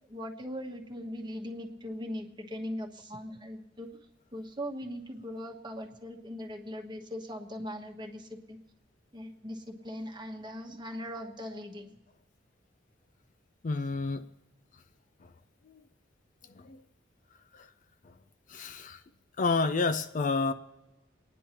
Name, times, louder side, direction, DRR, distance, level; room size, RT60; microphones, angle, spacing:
voice 1, 0.1-3.9 4.3-8.6 9.1-12.0, equal, 25° right, 1.1 m, -40 dB
voice 2, 13.6-14.3 15.2-15.3 15.7-15.8 16.5-16.8 17.5-17.7 18.5-19.0 19.4-20.5, left 3 dB, 45° left, 0.4 m, -30 dB
30.0 x 10.0 x 2.9 m
head